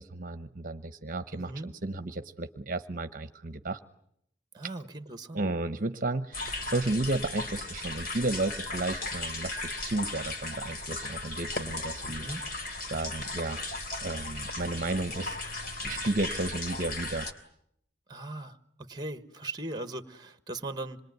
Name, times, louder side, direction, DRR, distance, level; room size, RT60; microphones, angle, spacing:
voice 1, 0.0-3.8 5.3-12.3 12.9-13.6 14.0-15.4 15.8-17.3, right 2 dB, 45° right, 10 dB, 1.0 m, -33 dB
voice 2, 1.3-1.7 4.5-5.4 12.0-12.4 18.1-21.0, right 2 dB, 20° right, 11 dB, 1.4 m, -39 dB
sound 1, 6.3-17.3, left 2 dB, 50° left, 3.2 m, -36 dB
27.0 x 22.0 x 9.4 m, 0.73 s
head